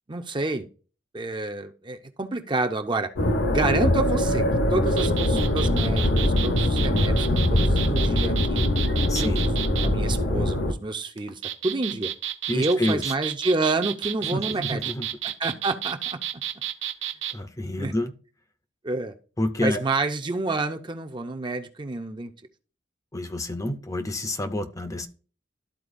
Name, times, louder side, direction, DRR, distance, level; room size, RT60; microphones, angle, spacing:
voice 1, 0.1-0.7 1.1-3.1 3.4-4.4 4.7-8.6 9.2-12.1 12.5-14.9 15.4-16.0 17.8-17.9 18.8-19.1 19.6-22.3, right 2 dB, 25° right, 6 dB, 0.6 m, -28 dB
sound 1, 3.2-10.7, left 1 dB, 60° left, 0.9 m, -22 dB
sound 2, 4.9-9.9 11.2-17.4, right 11 dB, 70° right, 0.6 m, -31 dB
voice 2, 9.1-9.5 12.5-13.1 14.3-15.1 17.3-18.1 19.4-19.8 23.1-25.1, left 1 dB, 15° left, 9 dB, 0.6 m, -28 dB
12.5 x 4.3 x 2.5 m, 0.38 s
head